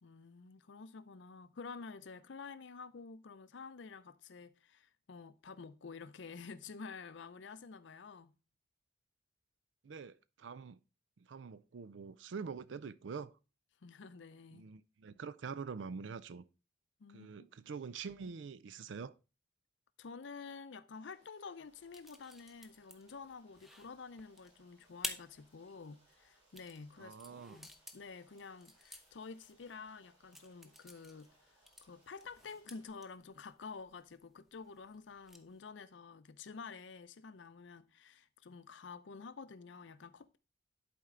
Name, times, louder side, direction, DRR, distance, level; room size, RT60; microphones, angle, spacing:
voice 1, 0.0-8.3 13.8-14.6 17.0-17.3 20.0-27.2 27.5-40.4, left 4 dB, 70° left, 0.5 m, -50 dB
voice 2, 9.8-10.8 11.3-13.3 14.5-16.4 17.1-19.1 27.0-27.6, right 5 dB, 70° right, 0.4 m, -45 dB
Stream, 20.9-32.9, right 2 dB, 25° right, 5.1 m, -71 dB
sound 1, 21.6-35.6, left 1 dB, ahead, 0.7 m, -52 dB
11.0 x 4.3 x 3.7 m
head